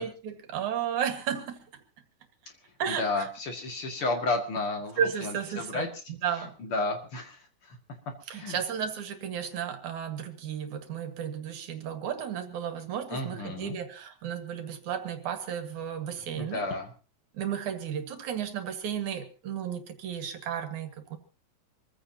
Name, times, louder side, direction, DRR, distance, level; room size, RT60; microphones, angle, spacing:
voice 1, 0.0-1.8 2.8-3.3 5.0-6.6 8.3-16.7 17.3-21.2, right 8 dB, 75° right, 8 dB, 3.1 m, -33 dB
voice 2, 2.9-5.9 6.6-7.8 8.3-8.6 13.1-13.8 16.3-16.9, left 2 dB, 45° left, 4 dB, 2.7 m, -32 dB
25.5 x 15.0 x 2.8 m, 0.35 s
omnidirectional pair, 3.5 m